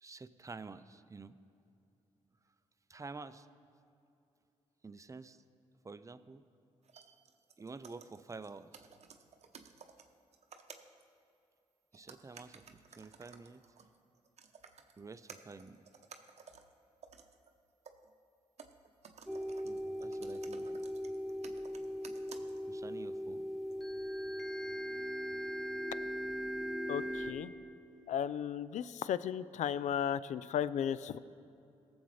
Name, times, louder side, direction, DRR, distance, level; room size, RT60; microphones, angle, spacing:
voice 1, 0.0-1.4 2.9-3.5 4.8-5.4 5.8-6.4 7.6-8.9 11.9-13.6 15.0-15.8 19.6-20.8 22.7-23.5, right 4 dB, 25° right, 12 dB, 0.5 m, -49 dB
sound 1, 6.8-11.0 11.9-18.1 18.6-22.8 23.7-23.8, right 6 dB, 55° right, 0.8 m, -56 dB
sound 2, 19.3-27.3, equal, ahead, 0.9 m, -39 dB
voice 2, 26.9-27.5 28.1-31.2, left 9 dB, 65° left, 16 dB, 0.4 m, -35 dB
17.5 x 7.1 x 3.2 m, 2.7 s
supercardioid pair, 50°, 13 cm